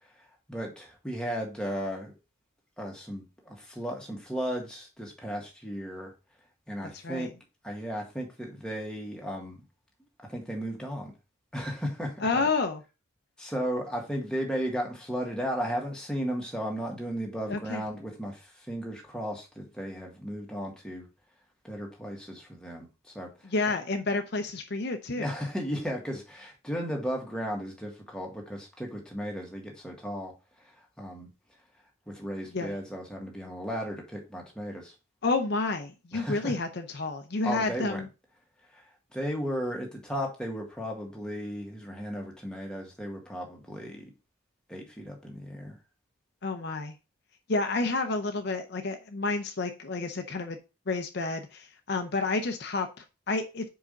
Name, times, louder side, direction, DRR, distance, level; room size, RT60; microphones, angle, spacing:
voice 1, 0.2-2.1 2.8-6.1 6.7-7.3 7.6-9.6 10.2-11.1 11.5-12.4 13.4-21.1 21.6-23.5 25.2-31.3 32.1-34.9 36.1-36.5 37.4-38.0 38.7-38.8 39.1-44.1 44.7-45.8, equal, 5° left, 1.7 m, -35 dB
voice 2, 6.9-7.3 12.2-12.8 17.5-17.8 23.4-25.3 32.5-32.7 35.2-38.1 46.4-47.0 47.5-50.6 50.9-53.6, left 3 dB, 50° left, 0.7 m, -30 dB
5.0 x 5.0 x 5.2 m
head